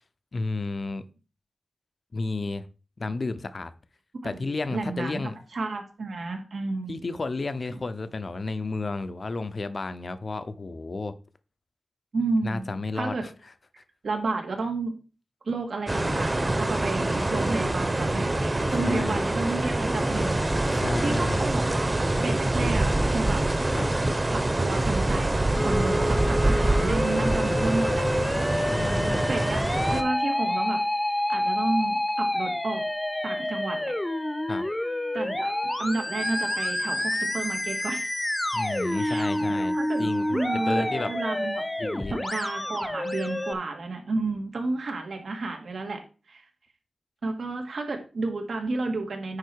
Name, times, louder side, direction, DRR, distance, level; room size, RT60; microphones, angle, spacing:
voice 1, 0.3-1.1 2.1-2.7 3.0-3.7 4.2-5.4 6.9-11.1 12.4-13.3 18.8-19.2 20.7-21.4 23.7-23.9 28.6-29.3 34.5-34.6 38.5-41.1 41.8-42.2, left 3 dB, 55° left, 12 dB, 0.8 m, -32 dB
voice 2, 4.2-5.2 5.5-7.0 12.1-13.2 14.0-14.9 15.4-23.4 23.9-28.6 29.2-29.6 29.9-30.8 31.3-32.8 33.2-33.9 35.1-35.5 35.8-38.1 38.9-41.6 42.1-46.0 46.3-46.5 47.2-49.4, right 3 dB, 85° right, 3 dB, 2.1 m, -31 dB
sound 1, 15.9-30.0, right 1 dB, 30° right, 1.1 m, -25 dB
Musical instrument, 25.6-43.5, left 1 dB, 20° left, 0.8 m, -28 dB
9.7 x 4.5 x 4.7 m, 0.35 s
wide cardioid pair, 65°, 0 cm